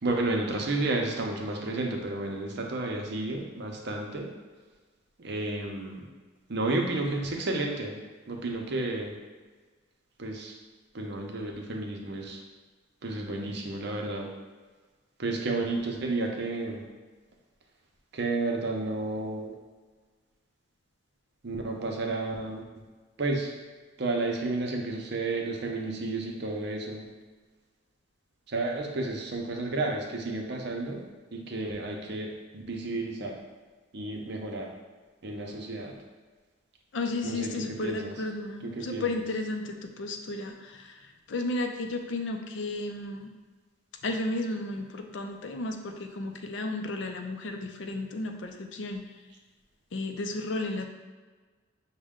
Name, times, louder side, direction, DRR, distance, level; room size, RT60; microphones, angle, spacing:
voice 1, 0.0-4.3 5.2-6.1 6.5-8.0 8.3-9.2 10.2-10.5 10.9-12.4 13.0-14.3 15.2-16.8 18.1-19.5 21.4-22.8 23.2-23.5 24.0-27.1 28.5-31.1 31.3-33.4 33.9-34.7 35.2-35.9 37.2-38.1 38.6-39.1, right 2 dB, 60° right, 1 dB, 0.7 m, -31 dB
voice 2, 36.9-40.9 41.3-43.3 44.0-49.0 49.9-50.9, left 2 dB, 65° left, 5 dB, 0.5 m, -33 dB
6.2 x 2.2 x 3.6 m, 1.4 s
head